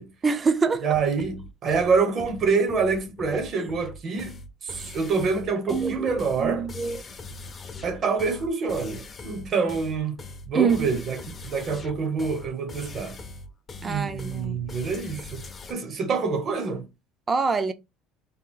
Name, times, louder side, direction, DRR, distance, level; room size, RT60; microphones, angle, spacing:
voice 1, 0.2-1.0 5.7-7.1 10.5-10.8 13.8-14.6 17.3-17.7, right 5 dB, 25° right, 0.4 m, -25 dB
voice 2, 0.8-6.7 7.8-10.2 10.5-13.2 13.8-15.4 15.7-16.9, right 5 dB, 45° right, 0.8 m, -26 dB
sound 1, 0.9-15.7, left 2 dB, 25° left, 0.5 m, -41 dB
2.8 x 2.3 x 3.8 m
cardioid pair, 120°, 0 cm